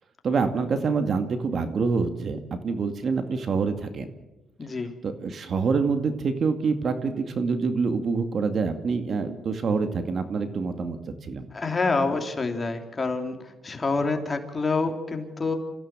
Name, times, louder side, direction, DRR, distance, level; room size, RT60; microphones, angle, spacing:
voice 1, 0.2-4.1 5.0-11.5, right 4 dB, 50° right, 8 dB, 2.2 m, -26 dB
voice 2, 4.6-4.9 11.5-15.6, left 3 dB, 30° left, 5 dB, 3.2 m, -27 dB
27.0 x 15.5 x 7.5 m, 1.1 s
cardioid pair, 90°, 0 cm